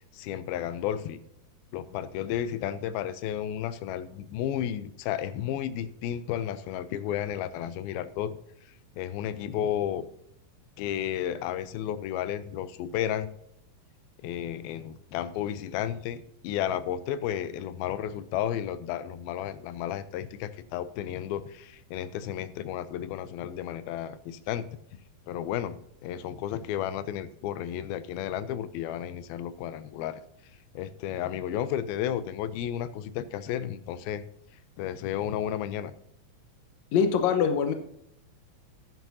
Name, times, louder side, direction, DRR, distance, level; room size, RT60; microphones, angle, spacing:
voice 1, 0.1-1.2 1.7-8.4 8.9-10.1 10.8-13.3 14.2-24.7 25.3-30.2 30.7-34.2 34.8-35.9, left 10 dB, 90° left, 14 dB, 2.5 m, -32 dB
voice 2, 36.9-37.7, left 6 dB, 65° left, 6 dB, 1.8 m, -23 dB
12.0 x 9.8 x 2.7 m, 0.75 s
omnidirectional pair, 4.2 m